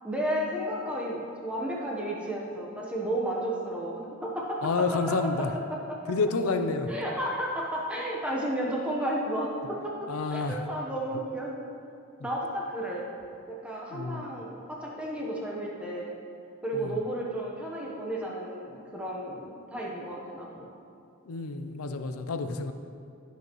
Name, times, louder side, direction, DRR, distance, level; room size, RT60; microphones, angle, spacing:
voice 1, 0.0-5.3 5.7-6.0 6.9-11.5 12.2-13.1 13.5-16.2 16.6-20.7, right 1 dB, 5° right, -4 dB, 1.0 m, -33 dB
voice 2, 4.6-5.5 6.1-6.9 10.1-10.6 13.9-14.3 16.7-17.0 21.3-22.7, left 4 dB, 80° left, 8 dB, 0.5 m, -29 dB
16.0 x 5.6 x 3.1 m, 2.5 s
head